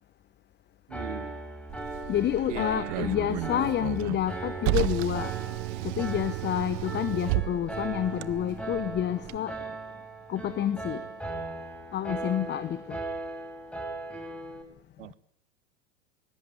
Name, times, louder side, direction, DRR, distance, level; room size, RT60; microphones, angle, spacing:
Piano, 0.9-14.6, right 2 dB, 5° left, 5.6 m, -38 dB
voice 1, 0.9-1.4 2.5-3.3 15.0-15.1, right 12 dB, 75° right, 1.3 m, -39 dB
Car, 1.7-9.4, right 23 dB, 50° right, 0.9 m, -33 dB
voice 2, 2.1-5.3 5.8-9.6 10.3-11.0 11.9-12.8, left 11 dB, 30° left, 1.1 m, -29 dB
20.5 x 19.5 x 9.5 m
hypercardioid pair, 95°, 37 cm